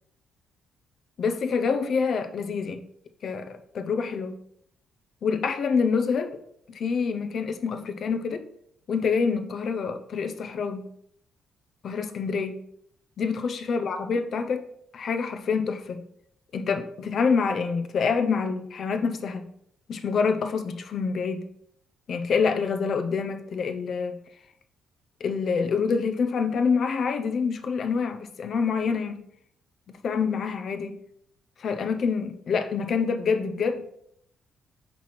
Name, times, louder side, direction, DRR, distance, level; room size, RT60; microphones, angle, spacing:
voice 1, 1.2-2.8 3.2-4.4 5.2-6.4 6.7-8.4 8.9-10.9 11.8-12.6 13.2-14.6 14.9-16.0 16.5-19.5 19.9-21.5 22.1-24.2 25.2-29.2 29.9-31.0 31.6-33.8, left 5 dB, 55° left, 7 dB, 0.7 m, -26 dB
5.5 x 4.4 x 4.7 m, 0.70 s
cardioid pair, 90°, 0 cm